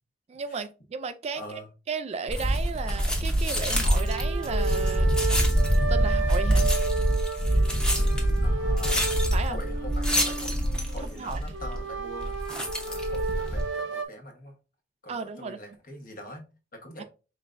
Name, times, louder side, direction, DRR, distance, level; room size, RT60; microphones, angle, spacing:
voice 1, 0.3-1.6 1.9-5.2 5.9-6.7 9.3-9.6 11.2-11.4 15.1-15.6 17.0-17.1, right 5 dB, 35° right, 0.3 m, -34 dB
voice 2, 1.3-1.7 8.4-10.5 10.9-12.4 12.9-14.5 15.0-17.0, equal, 50° left, 1.2 m, -43 dB
sound 1, 2.3-13.7, equal, 5° left, 0.8 m, -25 dB
sound 2, 3.9-14.0, right 4 dB, 75° right, 0.7 m, -33 dB
5.0 x 3.3 x 2.5 m
head